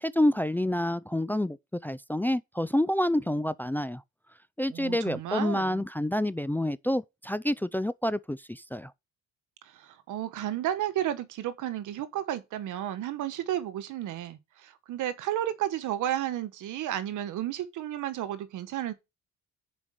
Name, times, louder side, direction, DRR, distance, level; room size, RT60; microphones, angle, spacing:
voice 1, 0.0-1.6 1.8-4.0 4.6-8.9, left 1 dB, 5° left, 0.4 m, -28 dB
voice 2, 4.7-5.8 9.6-18.9, right 12 dB, 85° right, 1.2 m, -32 dB
7.1 x 5.2 x 6.4 m
cardioid pair, 90°, 30 cm